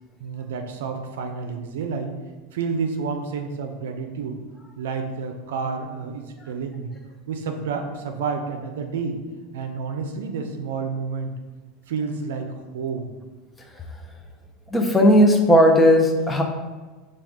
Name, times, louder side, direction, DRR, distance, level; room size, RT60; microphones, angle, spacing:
voice 1, 0.2-2.1 2.5-4.4 4.8-6.9 7.3-9.2 9.5-11.3 11.9-13.1, right 5 dB, 90° right, 5 dB, 0.5 m, -30 dB
voice 2, 14.7-16.4, equal, 10° left, 3 dB, 0.5 m, -16 dB
4.7 x 2.4 x 3.5 m, 1.3 s
supercardioid pair, 135°, 0 cm